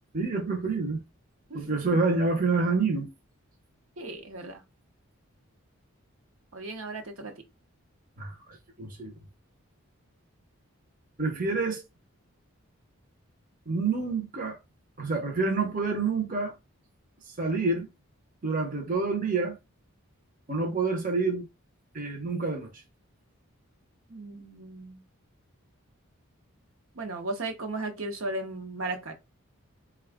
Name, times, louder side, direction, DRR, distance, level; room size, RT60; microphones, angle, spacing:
voice 1, 0.1-1.0 1.5-3.1 8.2-9.1 11.2-11.8 13.7-14.6 15.0-16.5 17.2-17.9 18.4-19.6 20.5-21.4 21.9-22.8, right 3 dB, 40° right, 0.7 m, -28 dB
voice 2, 1.5-2.0 4.0-4.6 6.5-7.3 24.1-25.0 26.9-29.1, right 2 dB, 70° right, 0.9 m, -36 dB
4.2 x 2.3 x 3.4 m
head